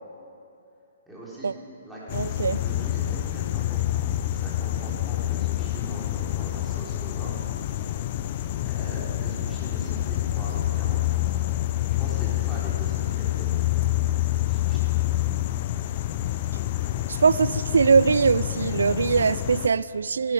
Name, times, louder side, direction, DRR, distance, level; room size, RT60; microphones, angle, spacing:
voice 1, 1.1-1.5 1.8-7.3 8.6-11.4 12.0-13.7 14.4-14.9, right 1 dB, 5° right, -8 dB, 3.7 m, -42 dB
sound 1, 2.1-19.7, left 13 dB, 45° left, 0.5 m, -27 dB
voice 2, 2.1-2.6 17.1-20.3, right 5 dB, 80° right, 18 dB, 0.3 m, -21 dB
17.0 x 12.0 x 4.6 m, 2.7 s
hypercardioid pair, 140°, 0 cm